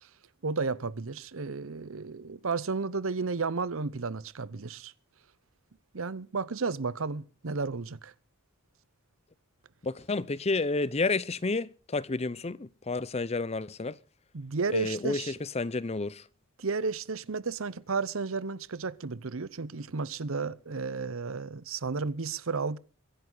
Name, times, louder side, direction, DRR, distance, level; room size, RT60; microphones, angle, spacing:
voice 1, 0.4-4.9 5.9-8.1 14.3-15.3 16.6-22.8, right 4 dB, 65° right, 0.8 m, -33 dB
voice 2, 9.8-14.0 14.7-16.3, left 3 dB, 30° left, 0.6 m, -30 dB
23.5 x 11.0 x 4.0 m
head